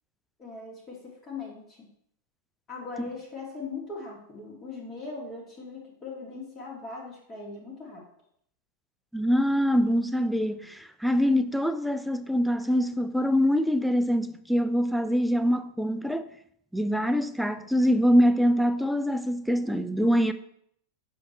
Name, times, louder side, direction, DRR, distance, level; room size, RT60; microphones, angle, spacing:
voice 1, 0.4-1.8 2.7-8.0, left 3 dB, 25° left, 1.7 m, -40 dB
voice 2, 9.1-16.3 16.7-20.3, equal, ahead, 0.4 m, -24 dB
6.9 x 4.7 x 3.0 m
figure-of-eight pair, 90°, 0 cm